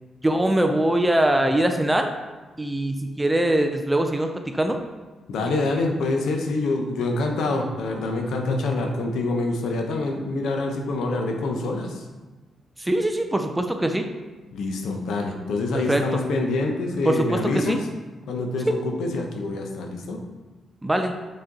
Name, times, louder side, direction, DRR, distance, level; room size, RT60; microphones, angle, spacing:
voice 1, 0.2-2.1 2.6-4.8 12.8-14.1 15.7-16.2 17.0-17.8 18.7-18.8 20.8-21.1, right 1 dB, 10° right, 5 dB, 0.5 m, -22 dB
voice 2, 5.3-12.0 14.5-17.8 18.3-20.2, left 2 dB, 85° left, 3 dB, 0.9 m, -26 dB
6.3 x 4.4 x 3.9 m, 1.2 s
cardioid pair, 125°, 0 cm